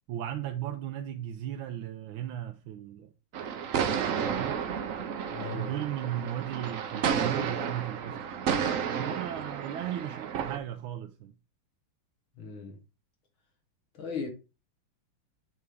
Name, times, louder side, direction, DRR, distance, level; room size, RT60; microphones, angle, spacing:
voice 1, 0.1-3.1 4.1-4.6 5.4-8.2 8.9-11.3, right 11 dB, 80° right, 1.4 m, -36 dB
sound 1, 3.3-10.6, right 7 dB, 65° right, 0.8 m, -32 dB
voice 2, 5.3-5.7 12.4-12.8 14.0-14.3, left 4 dB, 80° left, 2.4 m, -37 dB
8.2 x 3.4 x 4.7 m
omnidirectional pair, 2.2 m